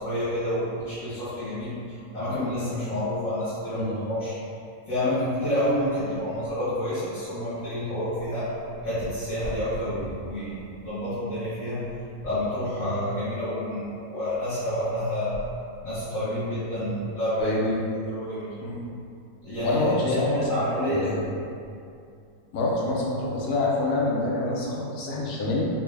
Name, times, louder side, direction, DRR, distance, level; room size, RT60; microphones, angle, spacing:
voice 1, 0.0-4.3 4.9-8.5 8.8-11.8 12.2-15.4 15.8-17.5 18.0-18.5 19.4-21.3, left 1 dB, 65° left, -15 dB, 1.5 m, -29 dB
voice 2, 17.4-17.8 18.6-18.8 19.6-20.6 20.8-21.2 22.5-25.7, left 2 dB, 85° left, -4 dB, 1.2 m, -26 dB
4.1 x 2.2 x 3.3 m, 2.4 s
omnidirectional pair, 1.6 m